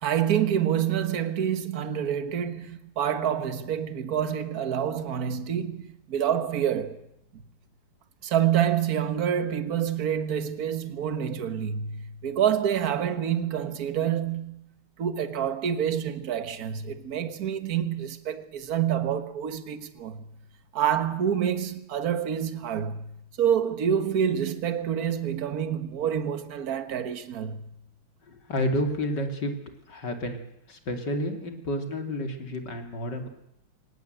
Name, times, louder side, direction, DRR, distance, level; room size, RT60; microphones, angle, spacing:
voice 1, 0.0-7.0 7.3-7.4 8.2-14.7 15.0-20.3 20.7-23.1 23.4-27.7, right 9 dB, 50° right, 1.6 m, -27 dB
voice 2, 28.3-29.5 29.9-30.4 30.7-33.3, equal, 55° left, 3.1 m, -30 dB
24.0 x 19.5 x 7.9 m
omnidirectional pair, 2.4 m